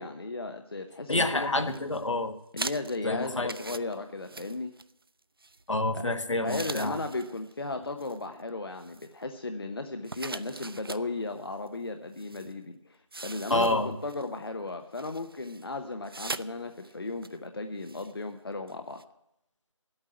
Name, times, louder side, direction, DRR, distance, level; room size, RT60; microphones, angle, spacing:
voice 1, 0.0-1.5 2.5-4.7 5.9-6.0 6.4-13.0 13.2-19.0, left 2 dB, 50° left, 6 dB, 0.8 m, -35 dB
voice 2, 1.1-2.4 3.0-3.5 5.7-7.0 13.5-13.9, left 2 dB, 70° left, 7 dB, 1.4 m, -28 dB
sound 1, 1.1-2.0 2.6-5.1 5.4-5.6 6.5-7.5 7.8-8.2 8.8-9.2 10.0-11.1 11.7-11.8 12.2-12.5 13.1-14.3 14.9-15.6 16.0-16.5 16.8-16.9 17.2-17.4 17.8-18.1 18.7-18.8 19.0-19.1, right 3 dB, 45° right, 0.4 m, -41 dB
9.9 x 8.9 x 9.7 m, 0.81 s
figure-of-eight pair, 175°, 16 cm